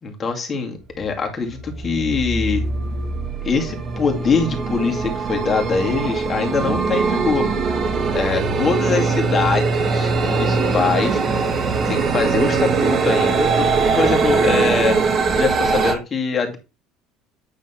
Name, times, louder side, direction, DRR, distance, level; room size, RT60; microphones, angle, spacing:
voice 1, 0.0-2.7 3.4-7.5 8.1-11.2 11.9-15.0 15.3-16.6, left 5 dB, 25° left, 3 dB, 2.1 m, -23 dB
sound 1, 0.9-1.1 1.5-15.9, right 4 dB, 35° right, 1.7 m, -21 dB
9.1 x 3.6 x 5.8 m, 0.29 s
cardioid pair, 145°, 0 cm